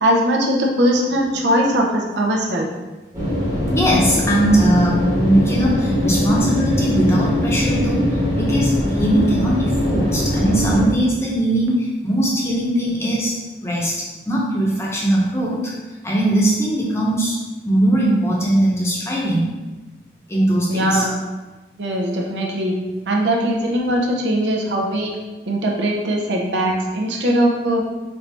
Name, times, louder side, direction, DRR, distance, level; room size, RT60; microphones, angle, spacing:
voice 1, 0.0-2.7 20.7-21.2 21.8-22.8 23.1-25.2 25.5-27.8, equal, 90° right, 0 dB, 0.7 m, -20 dB
sound 1, 3.1-10.9, equal, 20° right, 1.1 m, -21 dB
voice 2, 3.7-13.4 13.6-15.7 16.0-17.4 17.7-19.5 20.3-21.1, right 1 dB, 15° left, -4 dB, 0.7 m, -20 dB
4.3 x 2.7 x 3.3 m, 1.2 s
head